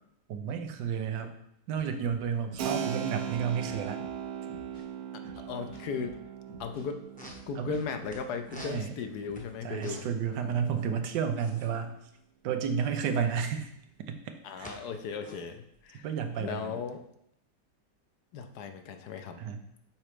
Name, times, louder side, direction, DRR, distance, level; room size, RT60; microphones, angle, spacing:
voice 1, 0.3-1.3 1.7-4.0 7.6-7.8 8.6-8.9 9.6-11.9 12.4-13.7 14.1-14.2 14.6-14.7 16.0-16.7 19.4-19.6, right 7 dB, 90° right, 7 dB, 1.3 m, -31 dB
sound 1, 1.8-8.8 9.1-9.6, equal, 85° left, 3.2 m, -52 dB
Keyboard (musical), 2.6-11.0, right 9 dB, 65° right, 1.1 m, -39 dB
voice 2, 5.1-6.2 6.6-7.0 7.5-10.1 10.4-11.0 14.4-16.1 16.4-17.0 18.3-19.4, left 6 dB, 70° left, 7 dB, 1.1 m, -37 dB
sound 2, 7.1-8.2 8.4-10.3 10.5-10.7 10.9-13.5 14.0-14.8 15.1-16.9, equal, 5° left, 0.7 m, -49 dB
6.1 x 4.3 x 4.9 m, 0.76 s
omnidirectional pair, 1.8 m